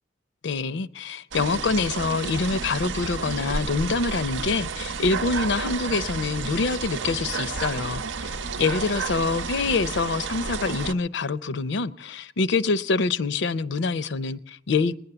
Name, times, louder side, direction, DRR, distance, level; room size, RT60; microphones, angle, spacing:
voice 1, 0.4-14.9, left 4 dB, 70° left, 0.5 m, -26 dB
sound 1, 1.3-10.9, right 4 dB, 80° right, 0.7 m, -31 dB
20.0 x 10.5 x 6.8 m
head